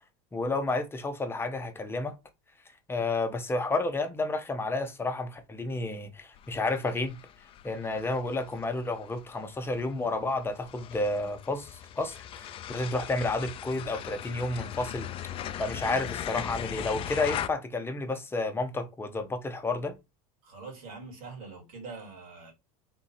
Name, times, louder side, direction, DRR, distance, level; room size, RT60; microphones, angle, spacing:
voice 1, 0.3-2.1 2.9-7.2 7.6-15.1 15.6-19.9, left 2 dB, 10° left, 0.7 m, -31 dB
sound 1, 6.4-17.5, left 10 dB, 30° left, 0.4 m, -39 dB
voice 2, 20.4-22.5, right 4 dB, 80° right, 2.2 m, -43 dB
3.7 x 2.7 x 4.1 m
supercardioid pair, 125°, 19 cm